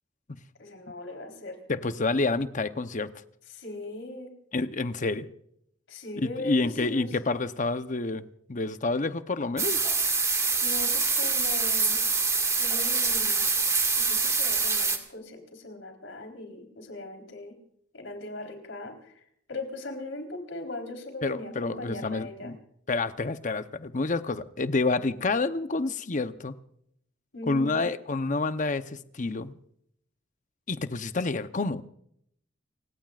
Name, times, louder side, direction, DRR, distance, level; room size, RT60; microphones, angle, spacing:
voice 1, 0.6-1.6 3.5-4.3 5.9-7.2 10.6-12.0 12.6-13.5 14.0-17.6 17.9-22.5 27.3-27.9, left 2 dB, 70° left, 4 dB, 4.0 m, -39 dB
voice 2, 1.7-3.1 4.5-5.3 6.4-9.8 21.2-22.6 22.9-26.6 27.5-29.6 30.7-31.8, left 3 dB, 40° left, 11 dB, 0.8 m, -28 dB
sound 1, 9.6-15.0, right 4 dB, 15° right, 2.0 m, -25 dB
29.5 x 17.0 x 2.5 m, 0.70 s
head